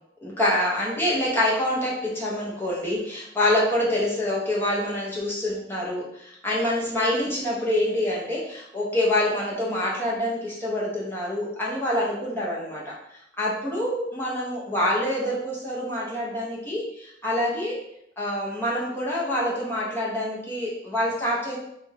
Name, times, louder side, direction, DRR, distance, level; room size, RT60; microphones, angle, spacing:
voice 1, 0.2-12.9 13.4-17.8 18.2-21.6, left 1 dB, 10° left, -6 dB, 0.8 m, -26 dB
3.2 x 2.3 x 3.3 m, 0.77 s
head